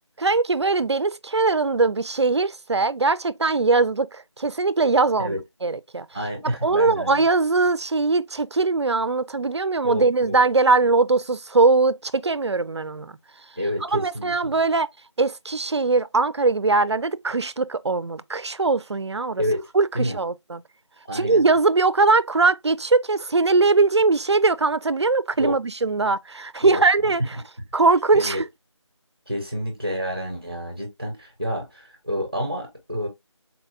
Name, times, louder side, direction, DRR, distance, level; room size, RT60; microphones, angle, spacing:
voice 1, 0.2-5.4 5.6-6.1 6.4-13.2 13.8-14.9 15.2-19.4 19.7-20.6 21.1-27.2 27.7-28.5, right 3 dB, 60° right, 0.4 m, -21 dB
voice 2, 6.1-7.3 9.8-10.4 13.6-14.5 19.4-19.7 19.9-20.2 21.1-21.4 25.4-25.6 26.6-27.3 28.1-28.4 29.3-33.1, equal, 20° right, 0.6 m, -28 dB
4.0 x 2.3 x 2.6 m
figure-of-eight pair, 175°, 16 cm